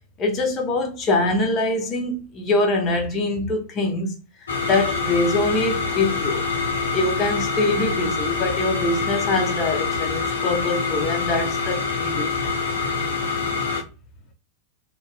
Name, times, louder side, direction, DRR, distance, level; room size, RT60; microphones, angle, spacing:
voice 1, 0.2-4.1 4.4-6.4 6.9-12.5, left 2 dB, 30° left, 1.0 m, -24 dB
sound 1, 4.5-13.8, left 4 dB, 70° left, 0.7 m, -25 dB
3.0 x 2.8 x 3.4 m
figure-of-eight pair, 90°, 0 cm